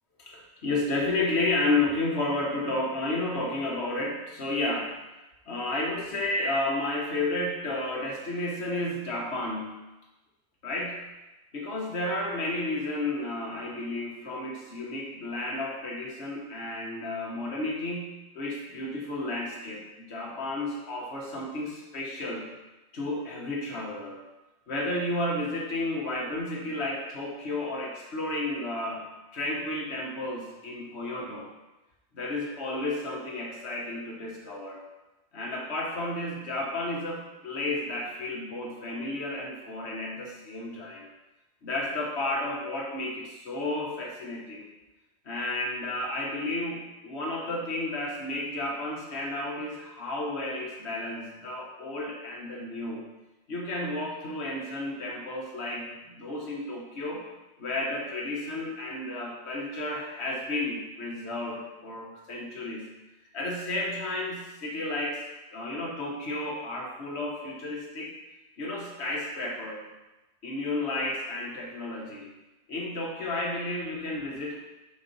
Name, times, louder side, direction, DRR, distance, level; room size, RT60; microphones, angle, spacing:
voice 1, 0.2-4.9 5.5-9.8 10.6-11.0 11.5-22.5 22.9-24.2 24.7-29.1 29.3-31.5 32.1-34.8 35.3-41.0 41.6-44.7 45.2-53.0 53.5-57.2 57.6-62.9 63.3-65.2 65.5-68.1 68.6-69.8 70.4-72.3 72.7-74.6, left 2 dB, 80° left, -2 dB, 1.4 m, -32 dB
5.3 x 4.3 x 5.2 m, 1.0 s
omnidirectional pair, 1.1 m